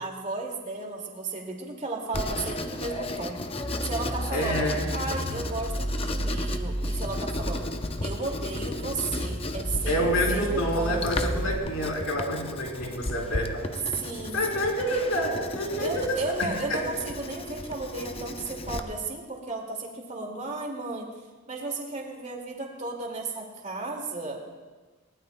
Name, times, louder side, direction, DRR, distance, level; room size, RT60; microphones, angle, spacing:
voice 1, 0.0-3.4 3.8-7.7 8.0-11.0 13.9-14.4 15.8-21.1 21.5-24.4, right 3 dB, 35° right, 1 dB, 2.2 m, -34 dB
Writing, 2.1-18.8, left 2 dB, 25° left, 0.6 m, -35 dB
sound 1, 3.5-11.5, equal, 15° right, 2.7 m, -32 dB
voice 2, 4.3-4.9 9.9-13.6 14.3-16.9, equal, 90° left, -1 dB, 3.6 m, -28 dB
21.5 x 19.0 x 2.2 m, 1.3 s
head